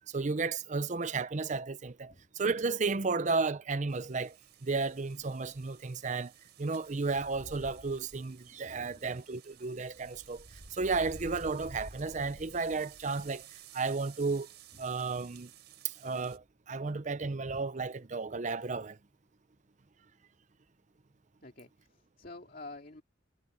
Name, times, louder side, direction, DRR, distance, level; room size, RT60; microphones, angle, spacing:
voice 1, 0.1-6.3 6.6-14.5 14.8-15.5 15.8-19.0, right 4 dB, 40° right, 0.7 m, -33 dB
sound 1, 3.9-16.4, right 3 dB, 60° right, 7.4 m, -52 dB
voice 2, 8.5-9.1 21.4-23.0, left 2 dB, 50° left, 2.4 m, -49 dB
head